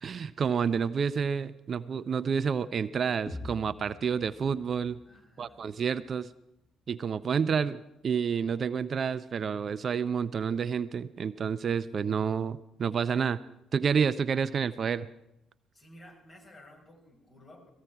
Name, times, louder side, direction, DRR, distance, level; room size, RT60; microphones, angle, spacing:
voice 1, 0.0-5.0 5.4-6.3 6.9-13.4 13.7-15.1, right 6 dB, 50° right, 15 dB, 0.5 m, -29 dB
sound 1, 3.3-7.2, left 2 dB, 20° left, 3.6 m, -47 dB
voice 2, 5.0-5.7 15.7-17.7, left 1 dB, 45° left, 0 dB, 6.0 m, -54 dB
18.5 x 15.5 x 4.8 m, 0.86 s
hypercardioid pair, 50°, 0 cm